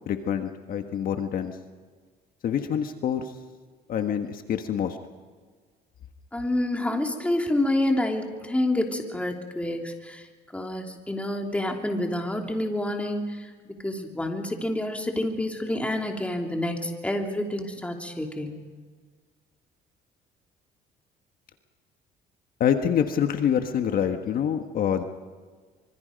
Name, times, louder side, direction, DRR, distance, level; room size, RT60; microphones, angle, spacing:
voice 1, 0.1-1.5 2.4-3.3 3.9-5.0 22.6-25.0, left 8 dB, 60° left, 6 dB, 1.5 m, -26 dB
voice 2, 6.3-10.2 10.5-18.6, left 1 dB, 5° left, 2 dB, 3.1 m, -28 dB
25.5 x 25.0 x 5.3 m, 1.5 s
cardioid pair, 110°, 17 cm